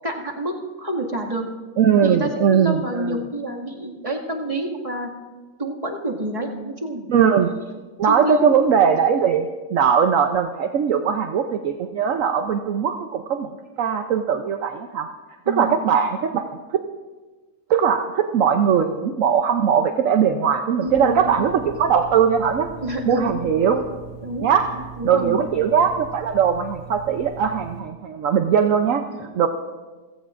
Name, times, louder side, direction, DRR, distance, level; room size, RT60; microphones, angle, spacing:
voice 1, 0.0-1.4 2.0-5.1 5.6-7.1 8.1-8.5 15.5-15.8 20.8-21.5 22.8-23.3 24.2-25.4 29.2-29.3, right 1 dB, 20° right, -2 dB, 2.2 m, -28 dB
voice 2, 1.8-3.2 7.1-7.5 8.0-13.5 13.8-15.1 15.5-16.6 17.7-22.7 23.1-23.9 24.4-24.7 25.0-29.0 29.3-29.5, right 7 dB, 65° right, 5 dB, 1.1 m, -20 dB
sound 1, 20.9-27.8, right 7 dB, 40° right, 2.4 m, -40 dB
28.5 x 16.5 x 2.6 m, 1.3 s
omnidirectional pair, 1.6 m